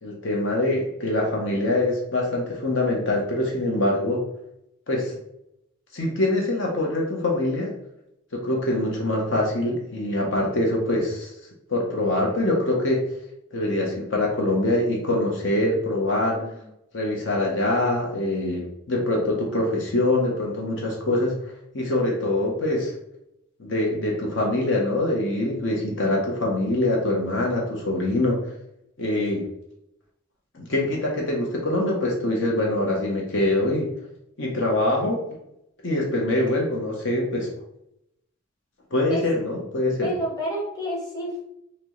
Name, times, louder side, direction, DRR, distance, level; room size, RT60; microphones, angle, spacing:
voice 1, 0.0-4.2 4.9-5.1 5.9-7.7 8.3-11.3 11.7-13.0 13.5-16.4 16.9-21.3 21.7-22.9 23.6-28.5 29.0-29.5 30.5-33.9 34.4-35.2 35.8-37.5 38.9-40.1, left 1 dB, 65° left, -1 dB, 0.8 m, -24 dB
voice 2, 3.6-4.1 16.3-16.5 39.1-39.2 40.0-41.4, equal, 20° left, -4 dB, 1.1 m, -30 dB
5.8 x 2.1 x 3.1 m, 0.82 s
head